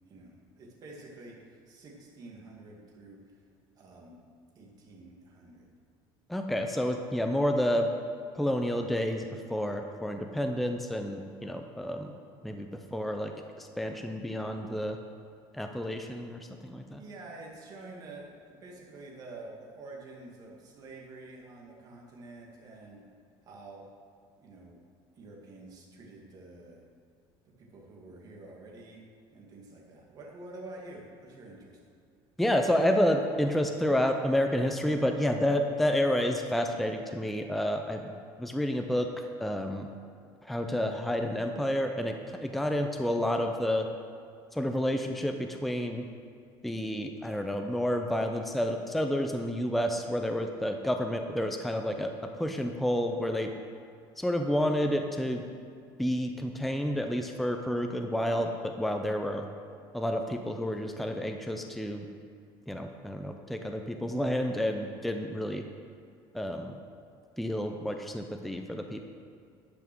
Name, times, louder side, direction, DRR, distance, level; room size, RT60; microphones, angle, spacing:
voice 1, 0.1-3.2 3.8-4.2 4.6-5.7 17.0-23.0 23.4-23.8 24.4-24.8 25.2-26.8 27.6-29.0 29.3-31.8, right 2 dB, 40° right, -2 dB, 2.1 m, -48 dB
voice 2, 6.3-7.9 8.3-12.1 12.4-13.3 13.6-15.0 15.5-17.0 32.4-38.1 38.4-39.9 40.4-43.9 44.5-46.0 46.6-52.1 52.4-53.5 54.2-55.4 56.0-59.5 59.9-62.1 62.7-65.6 66.3-66.7 67.4-69.0, equal, ahead, 4 dB, 0.5 m, -30 dB
11.0 x 5.8 x 6.1 m, 2.4 s
cardioid pair, 155°, 10 cm